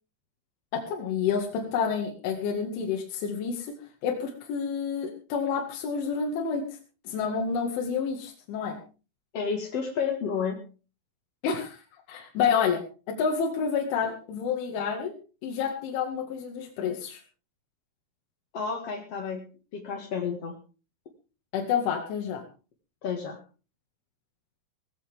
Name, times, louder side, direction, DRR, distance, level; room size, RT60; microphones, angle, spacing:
voice 1, 0.7-3.7 4.0-6.7 7.1-8.8 11.4-11.8 12.1-12.8 13.1-15.1 15.4-17.2 21.5-22.4, left 6 dB, 80° left, 1 dB, 4.6 m, -29 dB
voice 2, 9.3-10.6 18.5-19.4 19.7-20.6 23.0-23.4, left 6 dB, 50° left, 2 dB, 2.0 m, -31 dB
19.0 x 15.5 x 3.6 m, 0.36 s
omnidirectional pair, 5.4 m